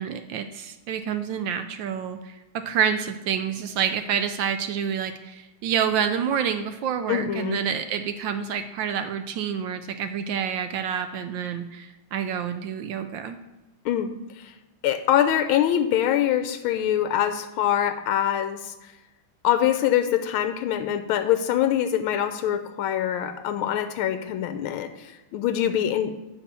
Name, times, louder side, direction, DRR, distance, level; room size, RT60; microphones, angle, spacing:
voice 1, 0.0-13.4, right 8 dB, 75° right, 8 dB, 1.1 m, -28 dB
voice 2, 7.1-7.6 13.8-14.1 14.4-14.5 14.8-18.7 19.4-26.2, left 10 dB, 80° left, 8 dB, 1.4 m, -24 dB
9.2 x 4.3 x 6.8 m, 1.1 s
omnidirectional pair, 2.4 m